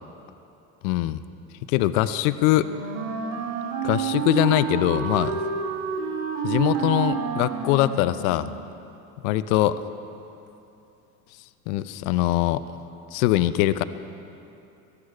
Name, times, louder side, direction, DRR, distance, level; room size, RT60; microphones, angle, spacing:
voice 1, 0.8-1.2 1.7-2.7 3.8-5.4 6.4-8.5 9.2-9.7 11.7-12.6 13.1-13.8, left 15 dB, 70° left, 14 dB, 0.6 m, -22 dB
Wind instrument woodwind instrument, 2.6-8.5, right 6 dB, 80° right, 1.9 m, -29 dB
17.5 x 13.0 x 4.8 m, 2.8 s
hypercardioid pair, 65°, 43 cm